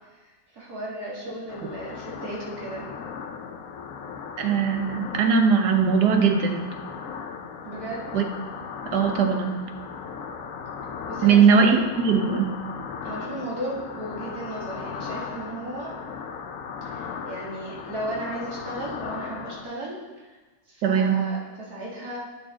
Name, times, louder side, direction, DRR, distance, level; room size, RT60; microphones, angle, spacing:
voice 1, 0.2-2.9 7.6-8.0 11.0-11.8 13.0-15.9 16.8-20.3 20.7-22.2, right 1 dB, 65° right, -5 dB, 2.4 m, -35 dB
sound 1, 1.5-19.6, left 6 dB, 60° left, 1.0 m, -37 dB
voice 2, 4.4-6.7 8.1-8.2 8.9-9.6 11.2-12.6 20.8-21.2, right 6 dB, 85° right, 4 dB, 1.5 m, -20 dB
9.3 x 6.9 x 3.7 m, 1.2 s
omnidirectional pair, 1.7 m